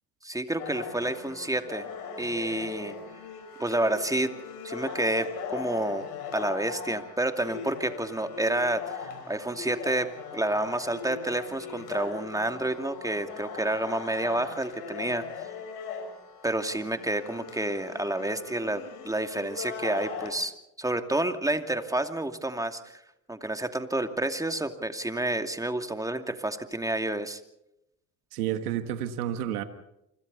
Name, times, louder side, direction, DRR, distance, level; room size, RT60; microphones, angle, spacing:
voice 1, 0.2-1.9 2.2-2.9 3.6-4.3 4.6-6.1 6.3-15.2 16.4-20.5 20.8-23.0 23.3-27.4, right 1 dB, 10° right, 7 dB, 2.5 m, -29 dB
sound 1, 0.6-20.3, left 6 dB, 90° left, 4.9 m, -40 dB
voice 2, 28.3-29.6, right 11 dB, 85° right, 9 dB, 1.6 m, -30 dB
28.0 x 25.5 x 4.1 m, 0.84 s
hypercardioid pair, 70°, 44 cm